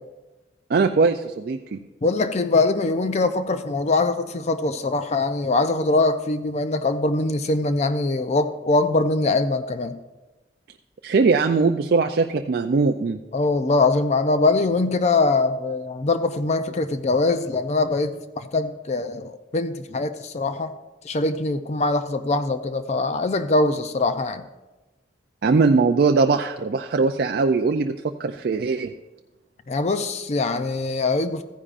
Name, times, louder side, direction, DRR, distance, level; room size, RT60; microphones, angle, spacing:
voice 1, 0.7-1.8 11.0-13.2 25.4-28.9, right 4 dB, 55° right, 6 dB, 0.4 m, -20 dB
voice 2, 2.0-9.9 13.3-20.7 21.0-24.5 29.7-31.4, left 3 dB, 35° left, 10 dB, 0.5 m, -22 dB
14.5 x 9.9 x 2.5 m, 1.1 s
head